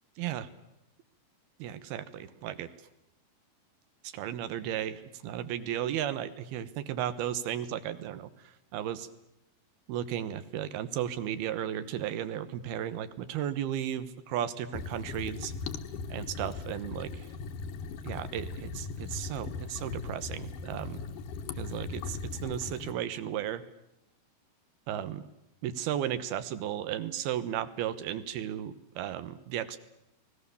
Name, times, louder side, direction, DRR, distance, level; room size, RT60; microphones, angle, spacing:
voice 1, 0.2-0.5 1.6-2.7 4.0-8.3 8.7-9.1 9.9-15.5 16.1-17.3 18.0-21.0 21.6-23.6 24.9-25.2 25.6-29.8, right 10 dB, 75° right, 13 dB, 2.9 m, -34 dB
sound 1, 14.7-22.9, left 4 dB, 65° left, 2.6 m, -39 dB
30.0 x 20.5 x 7.0 m, 0.86 s
omnidirectional pair, 4.7 m